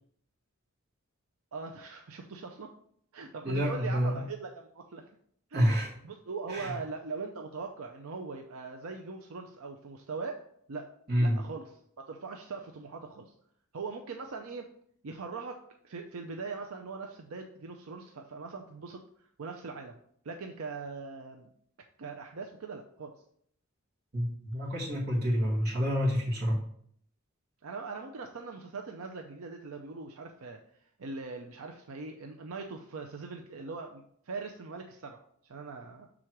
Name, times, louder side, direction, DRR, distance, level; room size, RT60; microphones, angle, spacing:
voice 1, 1.5-2.7 3.1-5.0 5.5-5.8 6.0-10.9 11.2-11.7 12.0-13.3 13.7-14.7 15.0-19.0 19.4-20.0 20.2-21.5 22.0-23.2 27.6-30.6 31.0-36.1, right 4 dB, 80° right, 3 dB, 0.5 m, -41 dB
voice 2, 3.4-4.2 5.5-5.9 6.5-6.7 11.1-11.4 24.1-26.6, equal, 50° right, -3 dB, 1.8 m, -28 dB
6.2 x 3.7 x 4.5 m, 0.65 s
head